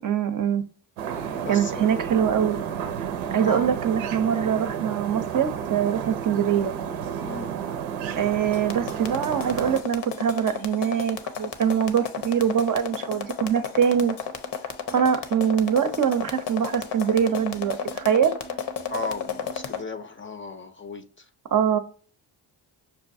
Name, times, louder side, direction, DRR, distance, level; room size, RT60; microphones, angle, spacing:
voice 1, 0.0-0.6 1.5-2.6 3.3-6.8 8.2-14.2 14.9-18.3 21.5-21.8, right 8 dB, 45° right, 0.6 m, -23 dB
sound 1, 1.0-9.8, right 8 dB, 85° right, 0.6 m, -31 dB
voice 2, 1.4-1.9 3.4-3.8 7.2-7.5 18.9-21.3, left 3 dB, 25° left, 0.5 m, -35 dB
sound 2, 8.5-19.8, left 7 dB, 65° left, 0.7 m, -32 dB
5.5 x 2.3 x 2.6 m
supercardioid pair, 60°, 45 cm